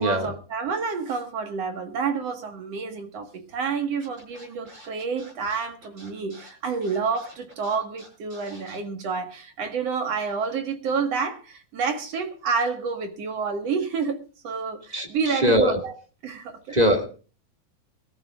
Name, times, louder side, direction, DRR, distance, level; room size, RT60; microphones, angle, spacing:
voice 1, 0.0-15.9 16.2-16.8, right 5 dB, 60° right, 6 dB, 2.7 m, -29 dB
Scratching (performance technique), 4.0-8.8, right 1 dB, 35° right, 6.9 m, -48 dB
voice 2, 14.9-15.9 16.7-17.1, equal, 15° right, 5 dB, 1.6 m, -22 dB
23.0 x 13.5 x 2.5 m, 0.35 s
omnidirectional pair, 3.4 m